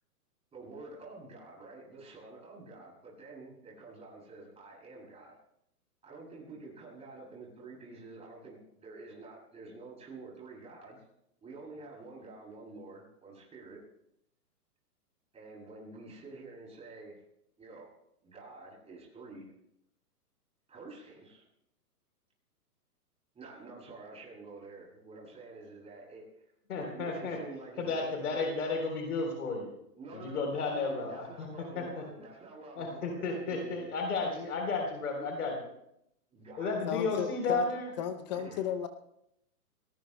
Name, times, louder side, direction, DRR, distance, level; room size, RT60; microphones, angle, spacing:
voice 1, 0.5-5.3 6.0-11.0 11.4-13.8 15.3-17.2 17.6-17.9 18.2-19.5 20.7-21.4 23.3-26.3 26.7-28.5 29.9-33.9 34.2-34.7 35.2-35.3 36.3-37.2 38.3-38.6, right 3 dB, 15° right, -3 dB, 7.6 m, -48 dB
voice 2, 26.7-27.4 27.8-29.7 30.1-31.5 31.8-32.0 32.8-35.6 36.6-37.9, left 3 dB, 70° left, 2 dB, 3.8 m, -33 dB
voice 3, 36.8-37.7 38.0-38.9, left 9 dB, 30° left, 9 dB, 0.7 m, -34 dB
29.5 x 19.0 x 2.2 m, 0.76 s
hypercardioid pair, 140°, 46 cm